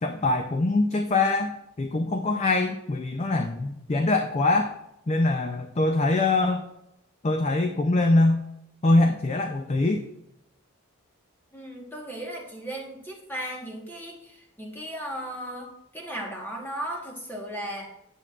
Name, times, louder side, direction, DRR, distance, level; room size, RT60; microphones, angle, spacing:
voice 1, 0.0-4.7 5.1-6.7 7.2-8.5 8.8-10.0, left 2 dB, 30° left, 5 dB, 0.4 m, -23 dB
voice 2, 11.5-17.9, right 1 dB, 10° left, -1 dB, 1.2 m, -36 dB
9.8 x 7.8 x 2.4 m, 0.84 s
head